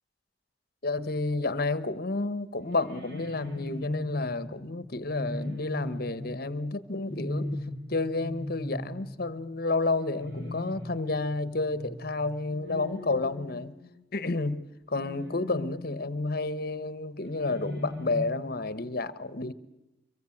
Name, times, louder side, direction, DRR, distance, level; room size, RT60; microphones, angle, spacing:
voice 1, 0.8-7.6 7.9-13.7 14.1-19.5, left 3 dB, 55° left, 14 dB, 1.2 m, -30 dB
sound 1, 2.6-14.2 14.9-16.3 17.2-18.8, left 1 dB, 65° right, 4.3 m, -39 dB
25.5 x 23.0 x 7.4 m, 0.90 s
head